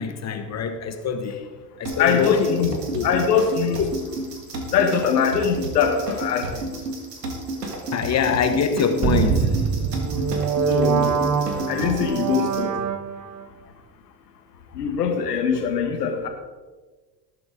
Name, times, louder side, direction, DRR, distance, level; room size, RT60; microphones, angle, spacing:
voice 1, 0.0-1.4 1.8-3.1 3.8-3.9 7.9-9.5, left 6 dB, 35° left, 7 dB, 1.2 m, -24 dB
sound 1, 1.9-12.6, right 2 dB, 90° right, 2.0 m, -32 dB
voice 2, 2.0-2.7 3.0-3.8 4.7-6.7 10.6-11.2 11.7-12.7 14.7-16.3, left 7 dB, 80° left, 5 dB, 1.8 m, -22 dB
sound 2, 9.0-13.4, right 6 dB, 35° right, 1.1 m, -23 dB
18.5 x 7.8 x 3.7 m, 1.3 s
hypercardioid pair, 75°, 47 cm